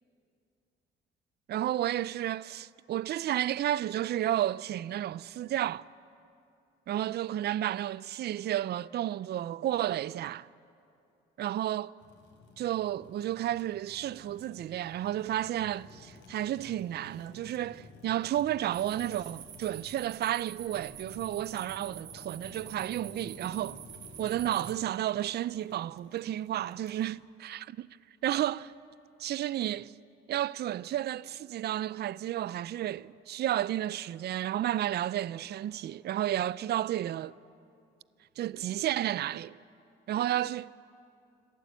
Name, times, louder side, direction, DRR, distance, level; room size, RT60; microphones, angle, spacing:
voice 1, 1.5-5.9 6.9-10.5 11.4-11.9 12.6-23.8 24.2-27.9 28.2-28.7 29.2-29.9 30.3-37.3 38.4-39.5 40.1-40.7, right 12 dB, 55° right, 0.4 m, -32 dB
Fire, 12.0-27.1, left 4 dB, 70° left, 3.2 m, -53 dB
sound 1, 18.7-24.7, right 11 dB, 85° right, 1.5 m, -47 dB
26.5 x 12.0 x 8.2 m
cardioid pair, 90°, 20 cm